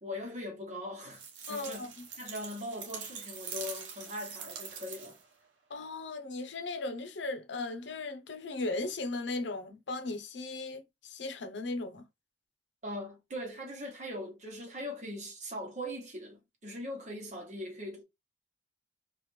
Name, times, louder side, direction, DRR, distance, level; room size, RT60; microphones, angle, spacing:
voice 1, 0.0-5.2 12.8-18.0, left 1 dB, 40° right, 1.1 m, -41 dB
sound 1, 1.1-5.3, right 6 dB, 80° right, 0.7 m, -44 dB
voice 2, 1.5-2.0 5.7-12.0, left 2 dB, 80° left, 0.7 m, -37 dB
3.2 x 2.4 x 3.2 m
head